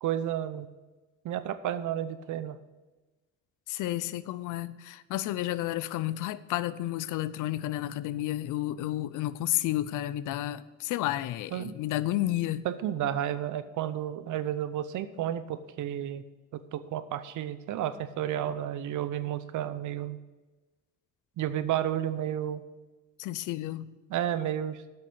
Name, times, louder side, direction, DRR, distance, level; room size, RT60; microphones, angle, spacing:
voice 1, 0.0-0.7 1.2-2.6 11.5-11.7 12.6-16.2 16.5-20.2 21.4-22.6 24.1-24.8, right 11 dB, 80° right, 0.8 m, -32 dB
voice 2, 3.7-12.6 23.2-23.9, left 14 dB, 85° left, 0.5 m, -31 dB
8.2 x 6.5 x 7.8 m
cardioid pair, 90°, 30 cm